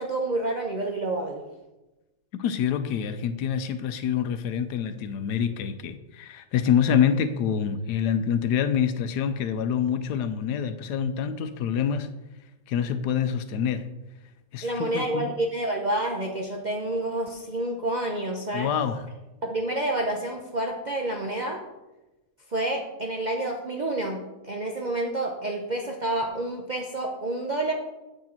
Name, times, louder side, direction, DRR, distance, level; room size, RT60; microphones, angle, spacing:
voice 1, 0.0-1.4 14.6-18.7 19.4-21.6 22.5-27.7, right 1 dB, 50° right, 1 dB, 0.5 m, -29 dB
voice 2, 2.3-12.1 12.7-13.9 14.5-15.3 18.5-19.1, left 8 dB, 90° left, 11 dB, 1.2 m, -26 dB
7.8 x 6.2 x 4.4 m, 1.0 s
omnidirectional pair, 1.7 m